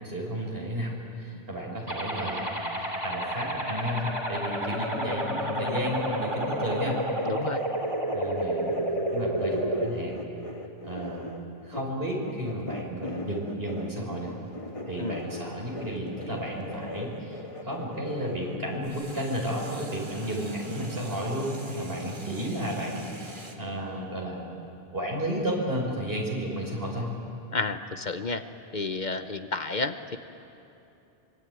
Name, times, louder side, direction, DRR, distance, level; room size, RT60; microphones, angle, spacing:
voice 1, 0.0-7.0 8.1-8.7 9.1-10.2 10.8-11.3 11.7-14.3 14.9-24.4 24.9-27.1, equal, 65° right, -1 dB, 5.9 m, -32 dB
sound 1, 1.9-9.9, right 1 dB, 30° right, 3.0 m, -30 dB
sound 2, 5.6-18.9, left 2 dB, 30° left, 1.9 m, -40 dB
voice 2, 7.3-7.6 15.0-15.2 27.5-28.4 28.7-30.2, left 3 dB, 50° left, 9 dB, 1.0 m, -31 dB
sound 3, 12.5-17.7 18.8-23.6, right 2 dB, 50° right, 2.4 m, -46 dB
24.5 x 24.0 x 9.4 m, 3.0 s
omnidirectional pair, 1.0 m